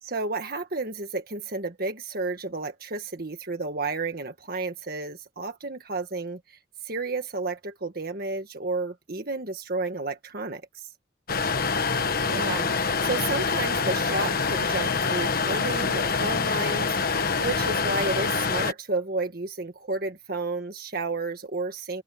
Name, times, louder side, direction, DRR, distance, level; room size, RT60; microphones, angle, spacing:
voice 1, 0.0-10.9 12.2-22.0, right 3 dB, 50° right, 1.6 m, -32 dB
sound 1, 11.3-18.7, left 5 dB, 50° left, 1.2 m, -25 dB
head